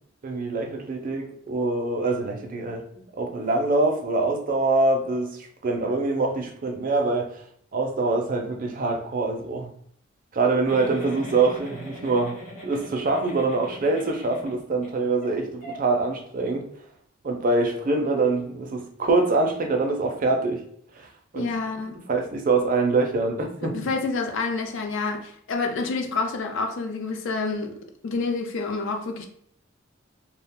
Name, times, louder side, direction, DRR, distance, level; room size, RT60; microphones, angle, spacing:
voice 1, 0.2-7.4 7.7-9.7 10.3-12.4 12.6-16.7 17.2-20.6 20.9-21.1 21.3-21.5 22.1-23.7, right 3 dB, 40° right, 3 dB, 0.5 m, -24 dB
Giggle, 10.7-14.9 15.2-15.3 15.6-15.8, equal, 45° left, 0.8 m, -41 dB
voice 2, 21.3-21.9 23.6-27.7 28.0-29.3, left 4 dB, 65° left, 4 dB, 0.4 m, -28 dB
2.3 x 2.1 x 3.4 m, 0.64 s
head